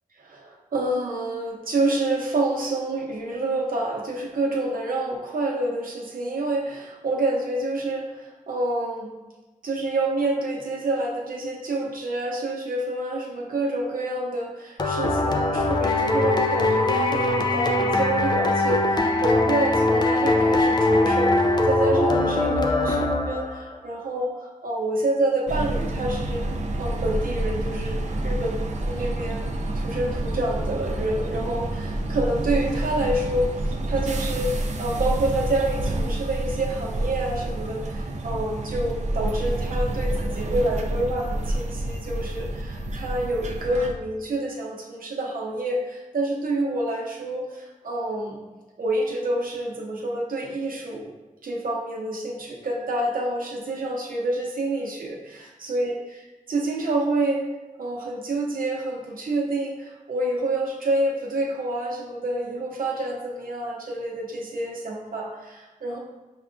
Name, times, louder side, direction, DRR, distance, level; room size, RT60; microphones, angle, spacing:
voice 1, 0.2-9.1 9.6-23.0 23.3-26.4 26.8-28.5 28.9-29.5 29.7-48.4 48.8-51.1 51.4-56.0 56.5-57.5 57.8-66.0, right 2 dB, 85° right, -1 dB, 0.7 m, -28 dB
sound 1, 14.8-23.7, left 2 dB, 30° left, 0.3 m, -22 dB
sound 2, 25.5-43.9, right 1 dB, 55° right, 0.4 m, -28 dB
5.8 x 2.2 x 2.5 m, 1.1 s
wide cardioid pair, 120°, 14 cm